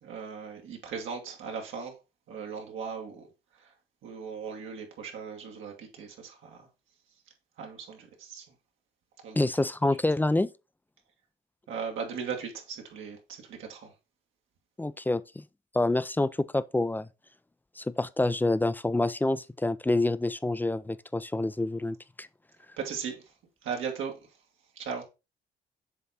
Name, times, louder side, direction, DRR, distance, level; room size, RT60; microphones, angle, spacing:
voice 1, 0.0-1.9 2.3-3.3 3.6-3.7 4.0-6.6 7.6-8.4 9.2-9.5 11.7-13.9 22.8-23.2 23.6-24.2 24.8-25.0, right 6 dB, 80° right, 1.8 m, -38 dB
voice 2, 9.4-10.5 14.8-15.4 15.7-17.1 17.8-22.3, left 2 dB, 10° left, 0.3 m, -27 dB
7.2 x 3.5 x 4.1 m
cardioid pair, 90°, 20 cm